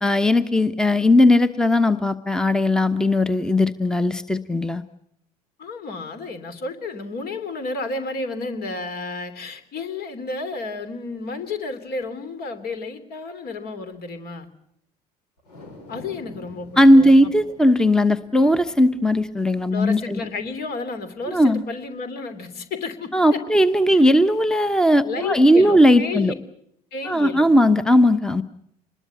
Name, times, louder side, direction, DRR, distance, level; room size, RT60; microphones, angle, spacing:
voice 1, 0.0-4.8 16.8-20.2 21.3-21.6 23.1-26.3 27.1-28.4, left 1 dB, 5° left, 12 dB, 1.0 m, -17 dB
voice 2, 5.6-14.5 15.9-17.3 19.7-23.4 23.9-24.0 25.0-26.3 26.9-27.5, left 3 dB, 50° left, 9 dB, 3.1 m, -32 dB
sound 1, 15.4-21.9 22.3-22.4, left 2 dB, 75° left, 5.6 m, -48 dB
25.5 x 21.0 x 7.0 m, 0.75 s
figure-of-eight pair, 60°, 20 cm